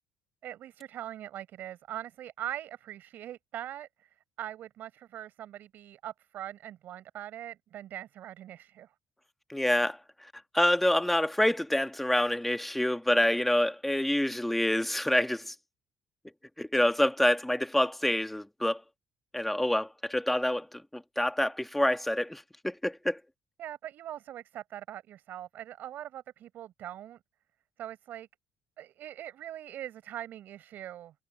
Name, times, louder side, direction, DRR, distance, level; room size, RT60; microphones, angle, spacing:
voice 1, 0.4-3.9 4.4-8.9 23.6-27.2 27.8-28.3 28.8-31.1, right 12 dB, 55° right, 5.6 m, -42 dB
voice 2, 9.5-10.0 10.5-15.5 16.6-18.8 19.3-23.2, left 1 dB, 5° left, 1.3 m, -27 dB
cardioid pair, 175°, 4 cm